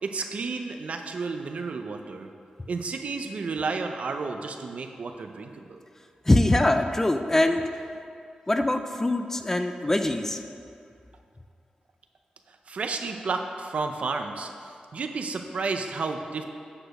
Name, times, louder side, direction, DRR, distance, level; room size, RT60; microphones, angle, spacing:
voice 1, 0.0-2.3 2.7-5.8 12.7-14.5 14.9-16.4, right 4 dB, 55° right, 5 dB, 0.6 m, -31 dB
voice 2, 6.3-7.7 8.5-10.4, left 1 dB, 15° left, 7 dB, 0.4 m, -23 dB
8.7 x 4.9 x 6.4 m, 2.4 s
wide cardioid pair, 155°, 3 cm